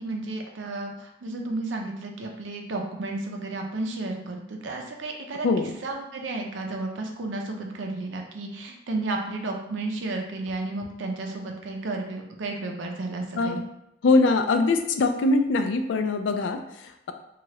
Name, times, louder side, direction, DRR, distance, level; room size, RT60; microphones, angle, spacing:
voice 1, 0.0-13.6, right 2 dB, 85° right, 2 dB, 0.5 m, -32 dB
voice 2, 14.0-17.1, left 3 dB, 75° left, 7 dB, 0.3 m, -23 dB
2.7 x 2.4 x 3.0 m, 0.80 s
head